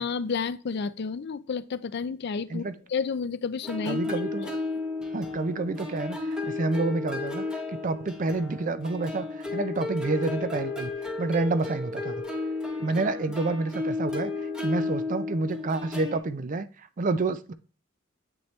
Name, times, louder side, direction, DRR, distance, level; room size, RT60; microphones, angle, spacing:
voice 1, 0.0-4.1, left 5 dB, 55° left, 15 dB, 0.4 m, -31 dB
sound 1, 3.6-16.2, left 3 dB, 5° right, 1.0 m, -33 dB
voice 2, 3.8-4.6 5.1-6.2 6.4-10.9 11.2-12.2 12.8-14.3 14.6-17.5, right 3 dB, 40° right, 13 dB, 0.5 m, -29 dB
8.0 x 4.3 x 3.2 m, 0.40 s
head